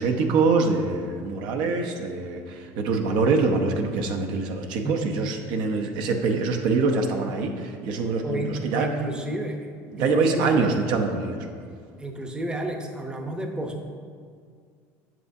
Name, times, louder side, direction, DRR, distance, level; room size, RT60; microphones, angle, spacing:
voice 1, 0.0-8.9 9.9-11.5, right 4 dB, 65° right, 4 dB, 0.7 m, -24 dB
voice 2, 8.2-9.7 10.0-10.7 12.0-13.8, right 1 dB, 10° right, 3 dB, 0.7 m, -31 dB
7.6 x 6.7 x 2.6 m, 2.1 s
supercardioid pair, 105°, 8 cm